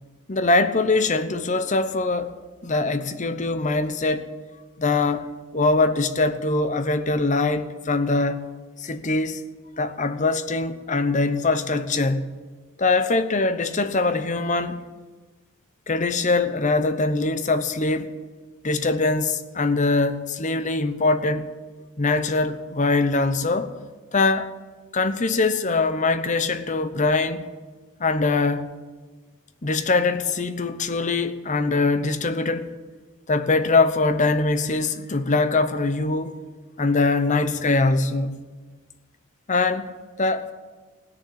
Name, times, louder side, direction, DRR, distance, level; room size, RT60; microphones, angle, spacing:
voice 1, 0.3-2.3 2.6-4.3 4.8-8.5 8.8-9.4 9.8-12.3 12.8-14.8 15.9-18.1 18.6-21.5 22.0-23.7 24.1-24.6 24.9-27.4 28.0-28.7 29.6-32.7 33.3-36.4 36.8-38.4 39.5-39.9 40.2-40.5, left 3 dB, 35° left, 0.8 m, -22 dB
16.5 x 6.9 x 9.5 m
head